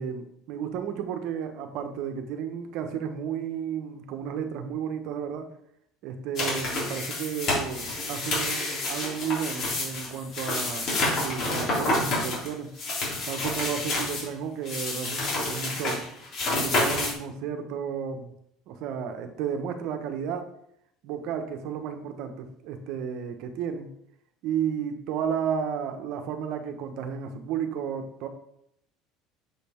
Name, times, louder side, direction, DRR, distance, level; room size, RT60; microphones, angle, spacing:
voice 1, 0.0-5.5 6.0-12.7 13.3-16.1 16.6-18.3 18.7-20.5 21.0-23.9 24.4-28.3, right 7 dB, 65° right, 6 dB, 1.2 m, -33 dB
sound 1, 6.4-14.3 14.7-17.1, left 2 dB, 55° left, 3.3 m, -29 dB
7.5 x 5.3 x 4.5 m, 0.72 s
supercardioid pair, 90°, 0 cm